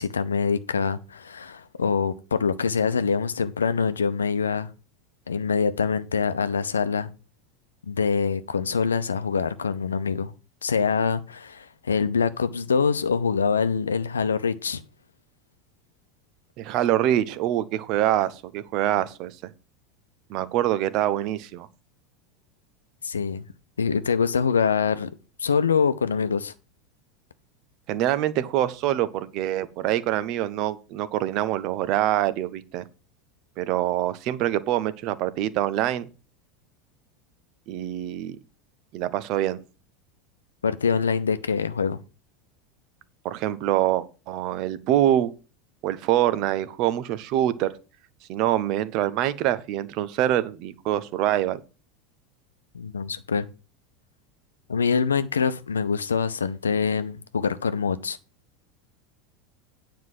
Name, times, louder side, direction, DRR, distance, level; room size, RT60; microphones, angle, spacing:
voice 1, 0.0-4.7 5.3-7.1 7.8-10.3 10.6-14.8 23.0-23.4 23.8-25.1 25.4-26.5 40.6-42.0 52.7-53.5 54.7-58.2, left 5 dB, 80° left, 0.7 m, -24 dB
voice 2, 16.6-19.5 20.3-21.7 27.9-32.8 33.6-36.1 37.7-38.4 38.9-39.6 43.2-45.3 45.8-47.7 48.3-51.6, right 12 dB, 50° right, 0.9 m, -25 dB
9.4 x 4.7 x 7.6 m
figure-of-eight pair, 80°, 0 cm